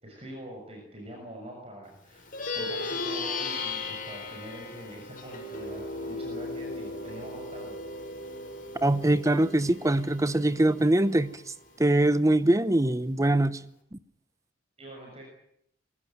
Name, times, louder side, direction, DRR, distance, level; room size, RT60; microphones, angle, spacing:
voice 1, 0.0-7.8 14.8-15.2, right 1 dB, 35° right, 6.5 m, -44 dB
Plucked string instrument, 2.2-11.9, left 3 dB, 50° left, 5.9 m, -37 dB
voice 2, 8.8-11.3 11.8-13.6 13.9-14.0, right 1 dB, 15° right, 0.8 m, -23 dB
23.5 x 17.5 x 9.3 m
head